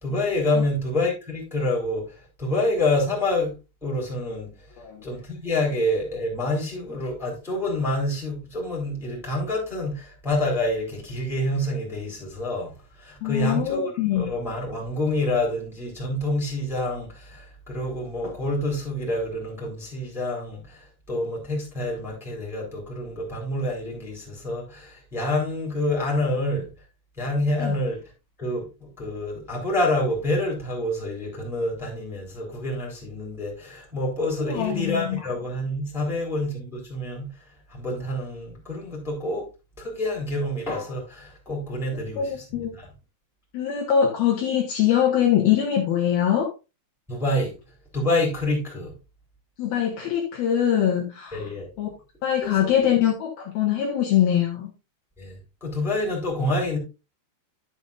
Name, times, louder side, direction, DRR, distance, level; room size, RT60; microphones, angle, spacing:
voice 1, 0.0-3.5 3.8-4.5 5.0-12.7 13.0-26.7 27.2-28.0 28.4-37.3 37.7-39.5 39.8-42.9 47.1-47.5 47.9-48.9 51.3-51.7 52.4-52.9 55.2-56.8, left 1 dB, ahead, 2.8 m, -27 dB
voice 2, 13.2-14.3 27.6-27.8 34.4-35.2 42.2-42.7 43.5-46.5 49.6-51.5 51.8-51.9 52.2-54.7, left 9 dB, 70° left, 2.7 m, -23 dB
11.5 x 7.0 x 2.6 m
omnidirectional pair, 5.3 m